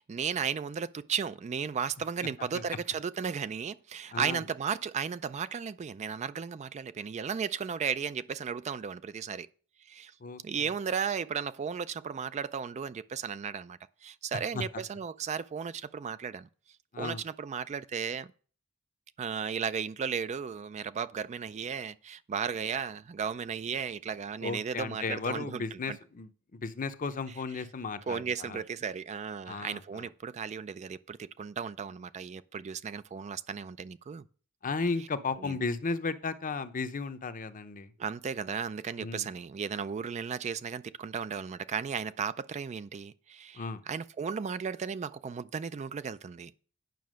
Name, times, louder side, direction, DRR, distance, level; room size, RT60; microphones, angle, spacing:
voice 1, 0.0-9.5 9.9-10.1 10.4-16.5 17.0-18.3 19.2-25.8 28.1-34.2 35.4-35.6 38.0-46.5, right 6 dB, 30° right, 0.3 m, -35 dB
voice 2, 4.1-4.4 10.2-10.7 14.5-14.6 16.9-17.2 24.4-28.6 29.5-30.1 34.6-37.9 39.0-39.3 43.5-43.8, left 4 dB, 40° left, 0.7 m, -35 dB
9.3 x 5.6 x 6.3 m
head